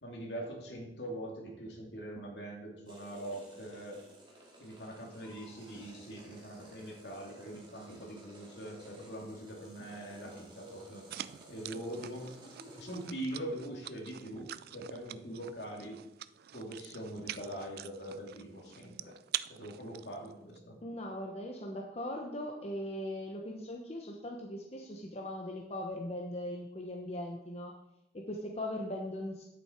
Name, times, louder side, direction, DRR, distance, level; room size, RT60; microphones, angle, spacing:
voice 1, 0.0-4.0 4.6-11.1 11.5-12.3 12.6-16.0 16.5-19.2 19.5-20.8, right 1 dB, 70° left, 0 dB, 2.6 m, -43 dB
sound 1, 2.9-13.1, right 1 dB, 25° right, 2.6 m, -55 dB
sound 2, 11.1-20.6, right 12 dB, 55° right, 0.3 m, -45 dB
voice 2, 20.8-27.7 28.1-29.4, left 1 dB, 35° left, 0 dB, 1.0 m, -39 dB
9.8 x 8.3 x 4.5 m, 0.85 s
head